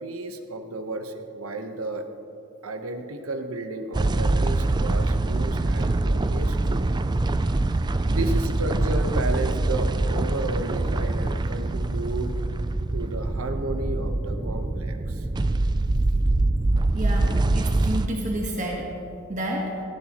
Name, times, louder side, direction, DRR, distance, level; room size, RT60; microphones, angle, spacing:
voice 1, 0.0-2.1 2.6-7.0 8.1-12.3 12.9-15.3, right 2 dB, 85° right, 6 dB, 1.1 m, -33 dB
sound 1, 3.9-18.1, right 2 dB, 20° right, 0.3 m, -24 dB
voice 2, 16.9-18.9 19.3-19.8, right 1 dB, 35° right, -1 dB, 1.4 m, -30 dB
17.0 x 15.5 x 3.0 m, 2.9 s
head